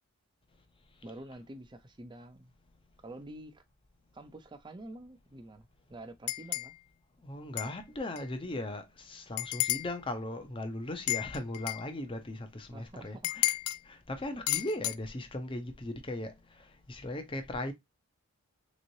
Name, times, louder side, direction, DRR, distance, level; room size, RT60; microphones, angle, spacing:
voice 1, 1.0-2.5 3.0-3.6 4.1-6.7 12.7-13.4, right 1 dB, 20° right, 0.5 m, -48 dB
sound 1, 6.3-6.7 7.6-7.7 8.2-8.3 9.4-9.9 11.1-11.9 13.2-13.8 14.5-15.0, left 16 dB, 80° left, 0.3 m, -32 dB
voice 2, 7.2-13.5 13.9-16.3 16.9-17.7, left 1 dB, 25° left, 0.6 m, -38 dB
3.7 x 3.0 x 2.6 m
head